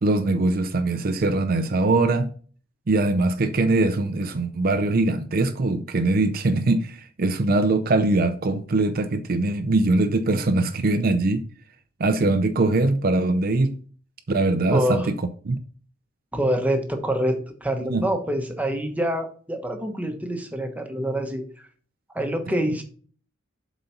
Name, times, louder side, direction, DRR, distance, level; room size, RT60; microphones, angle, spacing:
voice 1, 0.0-2.3 2.9-11.4 12.0-13.7 14.3-15.1 15.5-15.6 17.8-18.1, right 2 dB, 50° right, 0.5 m, -22 dB
voice 2, 14.7-15.1 16.3-21.4 22.1-22.8, equal, 10° right, 1.1 m, -26 dB
7.6 x 4.1 x 5.8 m
head